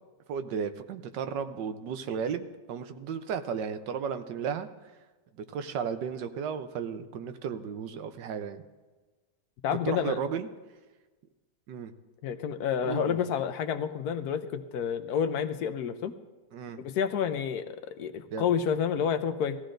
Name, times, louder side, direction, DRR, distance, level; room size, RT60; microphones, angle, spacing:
voice 1, 0.3-4.7 5.4-8.6 9.9-10.5 11.7-11.9 12.8-13.2 16.5-16.8 18.3-18.5, right 7 dB, 90° right, 9 dB, 1.4 m, -34 dB
voice 2, 9.6-10.2 12.2-16.1 16.8-19.6, left 7 dB, 70° left, 8 dB, 1.2 m, -29 dB
18.5 x 14.5 x 2.6 m, 1.2 s
omnidirectional pair, 1.8 m